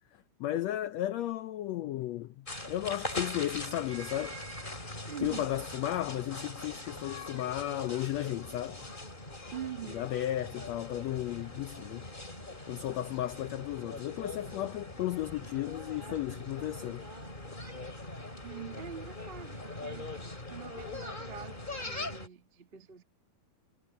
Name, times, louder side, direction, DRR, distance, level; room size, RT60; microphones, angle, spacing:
voice 1, 0.4-4.4 5.2-8.9 9.9-12.1 12.7-17.1, left 13 dB, 85° left, 1.5 m, -34 dB
sound 1, 2.5-22.3, left 2 dB, 15° left, 3.5 m, -42 dB
voice 2, 5.0-5.5 9.5-10.2 18.4-20.1 20.5-23.0, right 8 dB, 90° right, 0.5 m, -44 dB
omnidirectional pair, 3.9 m